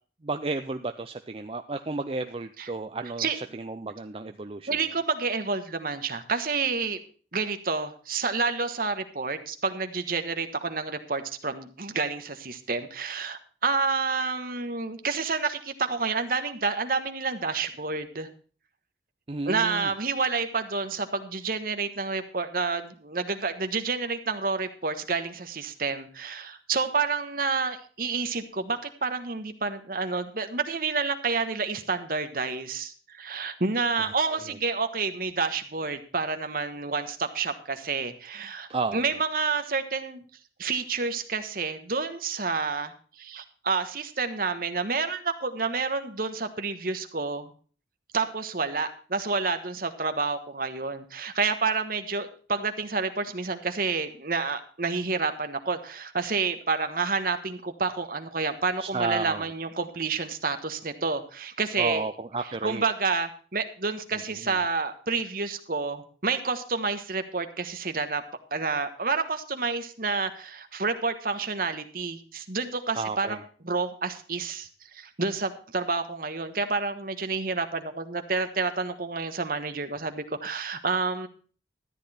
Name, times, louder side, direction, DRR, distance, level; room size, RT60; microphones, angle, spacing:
voice 1, 0.2-4.7 19.3-19.9 34.1-34.4 38.7-39.0 58.8-59.4 61.8-62.8 72.9-73.4, right 3 dB, 30° right, 7 dB, 0.5 m, -32 dB
voice 2, 4.7-7.0 7.3-18.3 19.4-40.2 40.6-47.5 48.1-62.0 62.4-68.2 68.5-73.4 73.6-81.3, right 4 dB, 50° right, 8 dB, 1.3 m, -29 dB
13.5 x 9.9 x 4.3 m, 0.40 s
head